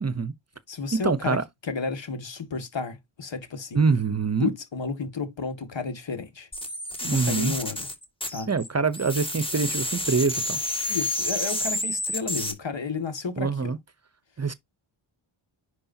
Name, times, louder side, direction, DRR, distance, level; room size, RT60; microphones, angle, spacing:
voice 1, 0.0-0.3 1.0-1.4 3.7-4.5 7.0-7.5 8.5-10.6 13.4-13.8 14.4-14.5, right 4 dB, 30° right, 0.8 m, -25 dB
voice 2, 0.7-3.8 4.4-6.5 7.0-7.9 8.3-8.5 10.9-13.7, left 4 dB, 60° left, 2.1 m, -32 dB
sound 1, 6.5-8.7 8.9-12.5, left 1 dB, 10° left, 2.1 m, -29 dB
9.9 x 4.8 x 2.8 m
cardioid pair, 70°, 50 cm